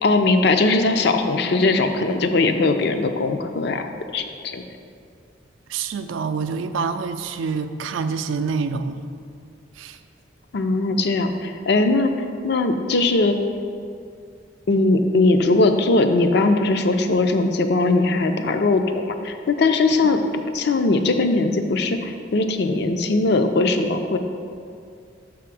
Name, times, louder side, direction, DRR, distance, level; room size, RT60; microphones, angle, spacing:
voice 1, 0.0-3.9 4.1-4.6 10.5-12.1 12.4-13.4 14.7-20.2 20.5-24.2, left 3 dB, 60° left, 7 dB, 0.5 m, -20 dB
voice 2, 5.7-9.1 9.8-10.0 20.0-20.1, right 5 dB, 90° right, 8 dB, 0.4 m, -26 dB
6.7 x 3.6 x 5.9 m, 2.3 s
head